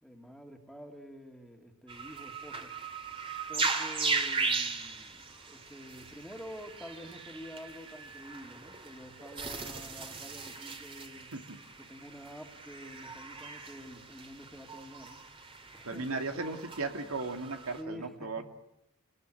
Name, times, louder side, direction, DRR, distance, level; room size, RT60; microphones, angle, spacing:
voice 1, 0.0-2.7 3.5-5.2 5.5-11.3 11.8-15.2 15.7-16.7 17.8-18.4, equal, ahead, 4 dB, 2.5 m, -48 dB
sound 1, 1.9-17.8, right 4 dB, 25° right, 2.3 m, -38 dB
voice 2, 15.8-18.4, right 3 dB, 90° right, 6 dB, 2.7 m, -36 dB
29.5 x 20.0 x 9.3 m, 0.87 s
head